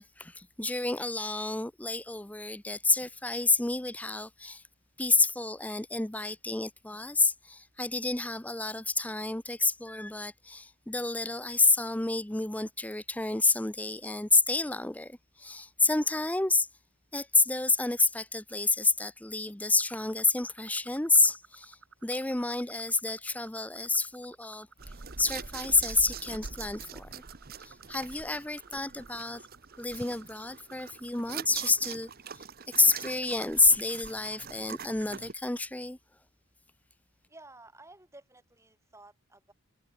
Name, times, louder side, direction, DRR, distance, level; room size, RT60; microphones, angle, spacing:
voice 1, 0.0-4.6 5.0-16.7 17.1-24.7 25.2-27.2 27.6-29.4 29.8-32.4 32.8-36.0, left 3 dB, 5° left, 0.6 m, -29 dB
sound 1, 19.8-31.1, right 5 dB, 70° right, 4.4 m, -56 dB
sound 2, 24.8-35.3, right 7 dB, 45° right, 1.0 m, -43 dB
voice 2, 37.3-39.5, right 2 dB, 15° right, 5.0 m, -53 dB
head